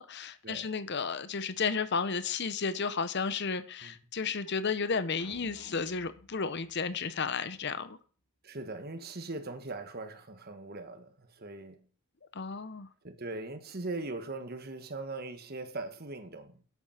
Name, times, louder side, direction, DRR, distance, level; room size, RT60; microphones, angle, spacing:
voice 1, 0.0-8.0 12.3-12.9, left 5 dB, 50° left, 0.8 m, -33 dB
sound 1, 5.2-7.6, left 2 dB, 70° left, 1.6 m, -55 dB
voice 2, 8.4-11.9 13.0-16.6, right 2 dB, 45° right, 1.4 m, -40 dB
10.5 x 8.2 x 5.7 m
head